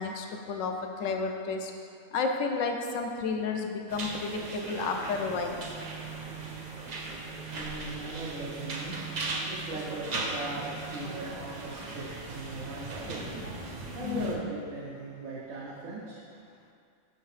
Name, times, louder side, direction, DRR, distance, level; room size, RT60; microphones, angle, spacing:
voice 1, 0.0-1.7 2.1-5.6 14.0-14.4, left 4 dB, 70° left, 4 dB, 0.9 m, -32 dB
sound 1, 3.9-14.4, right 2 dB, 55° right, 0.4 m, -38 dB
sound 2, 5.1-11.1, right 12 dB, 30° left, 0.6 m, -45 dB
voice 2, 7.5-9.0 9.5-13.3 13.9-16.2, right 2 dB, 75° right, -6 dB, 1.2 m, -39 dB
5.8 x 5.4 x 3.2 m, 2.4 s
omnidirectional pair, 1.4 m